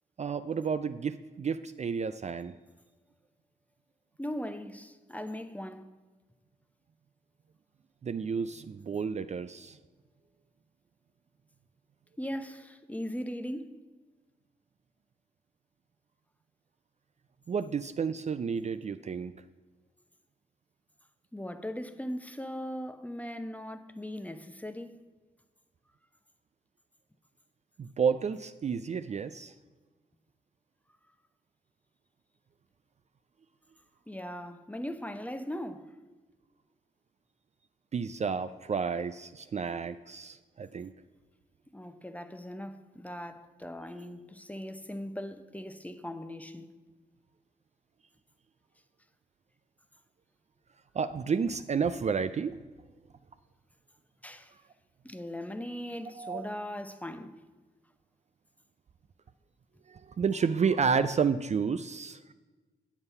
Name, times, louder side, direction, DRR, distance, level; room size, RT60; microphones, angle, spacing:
voice 1, 0.2-2.5 8.0-9.8 17.5-19.3 27.8-29.5 37.9-40.9 50.9-52.6 56.1-56.5 59.9-62.3, right 6 dB, 40° right, 0.4 m, -31 dB
voice 2, 4.2-5.9 12.2-13.8 21.3-25.0 34.1-35.9 41.7-46.7 54.2-54.5 55.0-57.4, equal, 10° left, 0.8 m, -39 dB
7.9 x 7.2 x 5.5 m
supercardioid pair, 45°, 17 cm